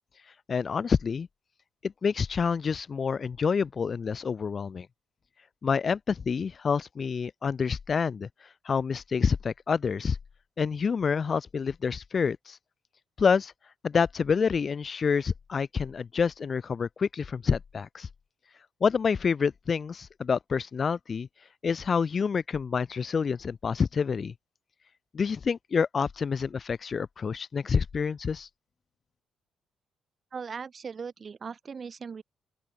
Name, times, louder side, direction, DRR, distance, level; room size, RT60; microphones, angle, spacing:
voice 1, 0.5-1.3 1.8-4.9 5.6-8.3 8.6-10.2 10.6-12.6 13.2-13.5 13.8-18.1 18.8-21.3 21.6-24.3 25.1-28.5, left 6 dB, 40° left, 0.3 m, -27 dB
voice 2, 30.3-32.2, right 5 dB, 40° right, 0.9 m, -39 dB
open air
cardioid pair, 90°, 0 cm